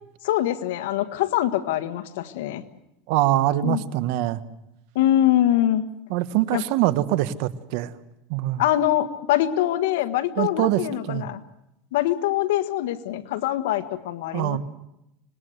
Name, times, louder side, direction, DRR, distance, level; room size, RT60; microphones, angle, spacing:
voice 1, 0.2-2.6 3.6-3.8 4.9-5.8 6.5-6.6 8.6-11.4 11.9-14.6, left 13 dB, 80° left, 10 dB, 1.6 m, -23 dB
voice 2, 3.1-4.4 6.1-7.9 8.3-8.6 10.4-11.3 14.3-14.6, right 15 dB, 60° right, 14 dB, 1.3 m, -23 dB
26.0 x 20.0 x 8.1 m, 0.87 s
supercardioid pair, 145°, 0 cm